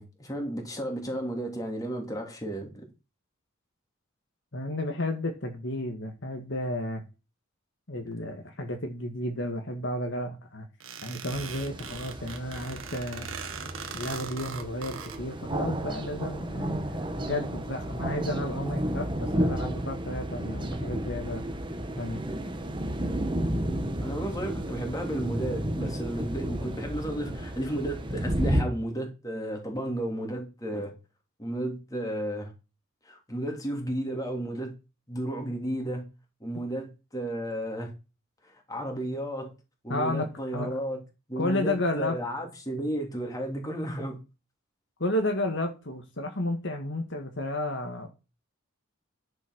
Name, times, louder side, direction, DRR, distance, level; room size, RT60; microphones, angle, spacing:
voice 1, 0.0-2.9 24.0-30.9 31.4-32.5 33.1-34.7 35.1-36.0 36.4-37.9 38.4-39.5 39.8-41.0 41.3-44.2, right 1 dB, 15° left, 3.0 m, -33 dB
voice 2, 4.5-7.0 7.9-10.7 11.0-13.3 13.9-21.4 22.0-22.2 39.9-40.7 41.4-42.2 45.0-48.1, left 1 dB, 60° left, 1.9 m, -32 dB
sound 1, 10.8-15.2, right 6 dB, 75° right, 1.7 m, -40 dB
sound 2, 11.3-28.6, right 1 dB, 25° right, 1.4 m, -32 dB
11.0 x 6.3 x 6.3 m
head